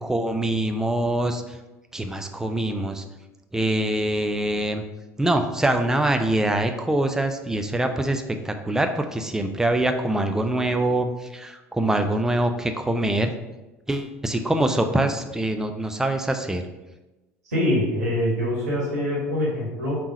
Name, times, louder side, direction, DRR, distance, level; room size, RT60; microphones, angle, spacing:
voice 1, 0.0-1.6 1.9-3.0 3.5-4.8 5.2-13.3 13.9-16.6, right 1 dB, 5° right, 6 dB, 0.4 m, -24 dB
voice 2, 17.4-20.0, left 1 dB, 80° right, -5 dB, 1.4 m, -24 dB
3.6 x 3.0 x 4.8 m, 1.0 s
figure-of-eight pair, 70°, 8 cm